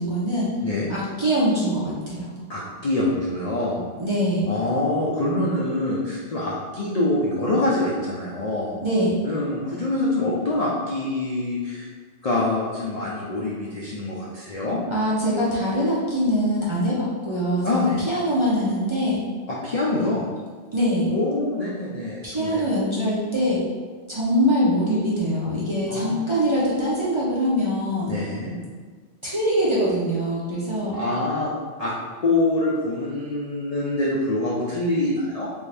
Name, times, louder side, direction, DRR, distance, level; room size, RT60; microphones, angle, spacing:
voice 1, 0.0-0.5 0.9-2.3 4.0-4.5 8.8-9.1 14.9-19.2 20.7-21.2 22.2-23.6 24.1-28.1 29.2-31.0, equal, 35° right, -8 dB, 0.5 m, -23 dB
voice 2, 2.5-3.9 4.5-8.7 9.2-11.9 12.2-14.8 17.6-18.0 19.5-20.2 21.1-22.7 25.9-26.3 28.1-28.6 30.9-31.5 31.8-31.9 32.2-35.5, left 2 dB, 55° left, -6 dB, 0.4 m, -25 dB
3.5 x 2.6 x 3.2 m, 1.5 s
omnidirectional pair, 1.2 m